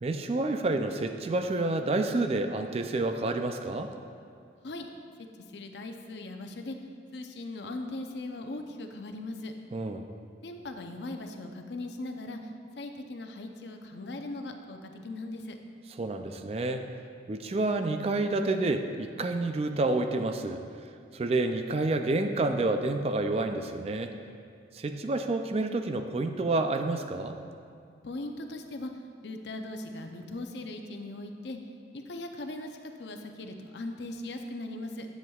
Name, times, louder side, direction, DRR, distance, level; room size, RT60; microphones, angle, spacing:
voice 1, 0.0-3.9 9.7-10.0 16.0-16.9 17.3-20.6 21.1-24.1 24.7-27.4, right 2 dB, 35° right, 7 dB, 0.4 m, -29 dB
voice 2, 5.5-6.8 7.1-9.5 10.4-15.6 28.0-28.9 29.2-31.6 31.9-35.1, left 2 dB, 75° left, 5 dB, 0.6 m, -39 dB
10.5 x 7.9 x 2.3 m, 2.4 s
head